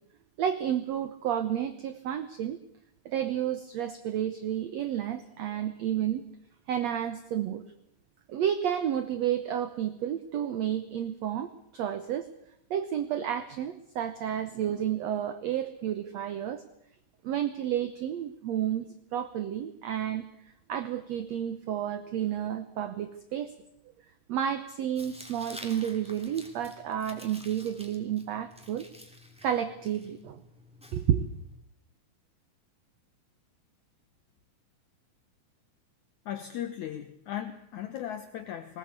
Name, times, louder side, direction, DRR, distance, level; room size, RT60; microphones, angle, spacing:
voice 1, 0.4-2.6 3.1-6.2 6.7-7.6 8.3-12.3 12.7-16.6 17.2-20.3 20.7-23.5 24.3-28.9 29.4-30.4 30.9-31.3, right 10 dB, 70° right, 11 dB, 1.7 m, -31 dB
Tearing, 24.9-31.6, left 1 dB, ahead, 2.2 m, -50 dB
voice 2, 36.3-38.8, left 10 dB, 65° left, 7 dB, 2.2 m, -37 dB
20.0 x 19.5 x 8.2 m, 0.74 s
omnidirectional pair, 4.1 m